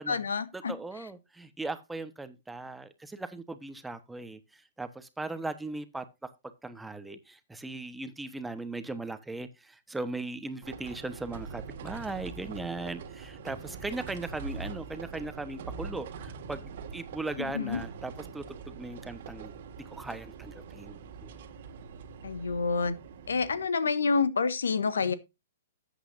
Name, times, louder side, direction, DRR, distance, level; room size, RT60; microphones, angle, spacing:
voice 1, 0.0-0.7 17.4-17.8 22.2-23.0 23.3-25.1, left 5 dB, 75° left, 1.3 m, -28 dB
voice 2, 0.5-6.3 6.6-19.5 19.8-21.3, right 2 dB, 5° right, 1.0 m, -38 dB
sound 1, 10.6-23.7, right 5 dB, 55° right, 1.8 m, -43 dB
12.5 x 8.3 x 2.6 m
hypercardioid pair, 120°, 0 cm